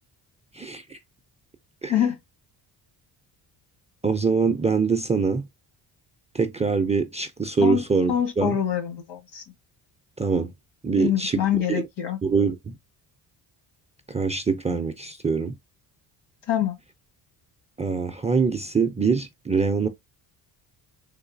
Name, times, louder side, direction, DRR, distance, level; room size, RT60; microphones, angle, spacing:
voice 1, 0.5-1.0 1.8-1.9 4.0-5.5 6.3-8.6 10.2-10.5 10.8-11.4 11.7-11.8 12.2-12.8 14.1-15.5 17.8-19.9, right 5 dB, 15° right, 0.3 m, -24 dB
voice 2, 8.1-9.4 11.0-12.2 16.5-16.7, left 10 dB, 75° left, 1.4 m, -25 dB
3.8 x 2.6 x 2.5 m
cardioid pair, 105°, 44 cm